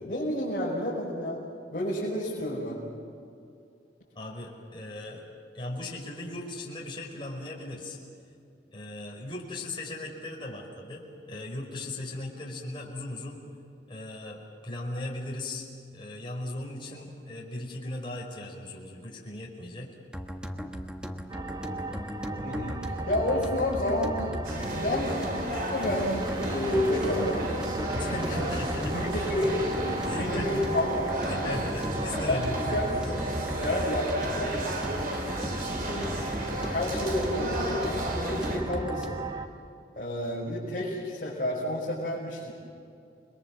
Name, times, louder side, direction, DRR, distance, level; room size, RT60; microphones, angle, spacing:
voice 1, 0.0-1.4 1.7-2.8 22.4-25.1 25.7-26.2 26.5-27.6 28.0-28.5 28.9-29.6 30.1-31.6 32.1-32.4 32.7-32.9 33.6-34.5 35.6-36.1 36.5-39.2 40.0-42.5, left 1 dB, 45° left, -7 dB, 6.0 m, -30 dB
voice 2, 4.2-5.3 5.5-8.0 8.7-13.4 13.9-15.7 15.9-19.9 27.9-28.9 30.0-30.5 31.2-33.0, left 2 dB, 30° left, -2 dB, 5.3 m, -38 dB
sound 1, 20.1-39.3, equal, 5° right, 1.4 m, -37 dB
sound 2, 21.3-39.5, right 3 dB, 25° right, 1.5 m, -37 dB
sound 3, 24.4-38.6, right 1 dB, 50° right, 4.0 m, -34 dB
30.0 x 22.0 x 7.6 m, 2.4 s
head